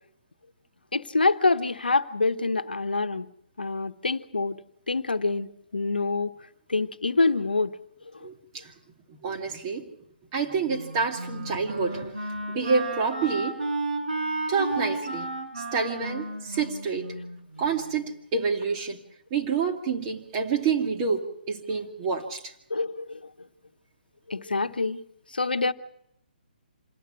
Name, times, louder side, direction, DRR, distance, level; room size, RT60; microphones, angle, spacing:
voice 1, 0.9-3.3 3.6-4.6 4.9-5.5 5.7-6.3 6.7-7.7 22.7-23.3 24.3-25.0 25.3-25.7, left 3 dB, 75° left, 10 dB, 1.0 m, -26 dB
voice 2, 8.2-8.7 9.1-9.9 10.3-12.2 12.5-13.6 14.5-15.3 15.6-17.1 17.6-19.0 19.3-22.5, right 5 dB, 30° right, 3 dB, 2.4 m, -28 dB
Wind instrument woodwind instrument, 10.7-17.8, right 2 dB, 75° right, 6.8 m, -33 dB
27.0 x 18.5 x 6.1 m, 0.75 s
figure-of-eight pair, 135°, 5 cm